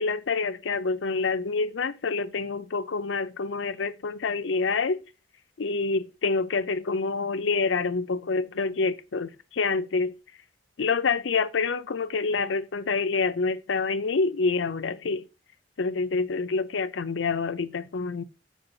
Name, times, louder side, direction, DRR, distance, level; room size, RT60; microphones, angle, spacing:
voice 1, 0.0-5.0 5.6-10.1 10.8-15.2 15.8-18.2, left 4 dB, 80° left, 0.5 m, -27 dB
7.1 x 4.9 x 3.9 m
head